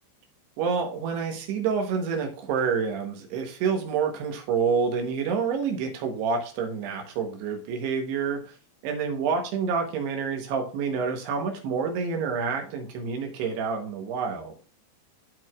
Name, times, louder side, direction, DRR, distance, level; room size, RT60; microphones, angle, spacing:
voice 1, 0.6-8.5 8.8-14.5, right 5 dB, 90° right, 4 dB, 3.3 m, -28 dB
13.0 x 4.6 x 2.4 m, 0.36 s
omnidirectional pair, 4.6 m